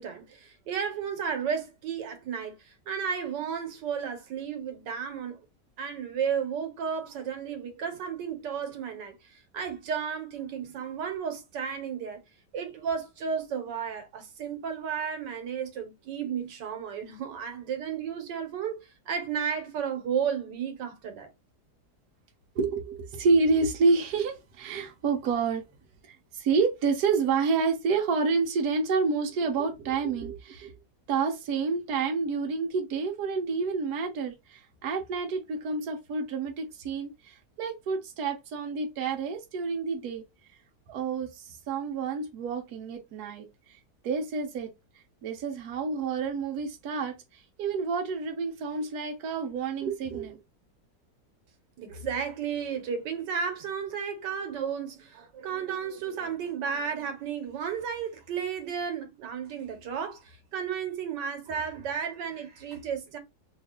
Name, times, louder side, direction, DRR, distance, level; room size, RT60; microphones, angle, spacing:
voice 1, 0.0-5.4 5.8-12.2 12.5-21.3 51.8-63.2, right 7 dB, 90° right, 1.6 m, -33 dB
voice 2, 22.5-25.6 26.3-30.7 31.1-40.2 40.9-43.8 44.0-44.7 45.2-50.4, right 4 dB, 70° right, 1.3 m, -29 dB
3.2 x 2.4 x 3.5 m
omnidirectional pair, 1.8 m